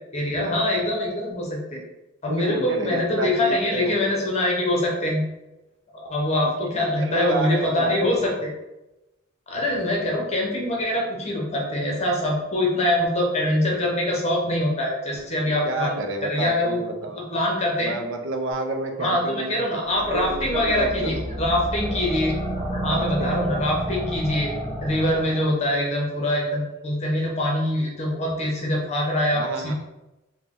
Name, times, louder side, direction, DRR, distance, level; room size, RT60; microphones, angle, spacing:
voice 1, 0.1-1.8 2.2-5.2 5.9-8.5 9.5-16.0 16.3-16.8 17.2-17.9 19.0-24.5 24.8-29.7, left 1 dB, 30° left, -2 dB, 0.9 m, -24 dB
voice 2, 2.3-4.2 7.0-8.3 9.5-10.4 15.6-17.2 17.8-19.7 20.0-21.4 22.8-23.7 29.3-29.7, right 2 dB, 60° right, 4 dB, 0.5 m, -31 dB
sound 1, 19.9-25.6, right 1 dB, 20° right, 0.8 m, -30 dB
4.0 x 2.2 x 3.6 m, 0.98 s
head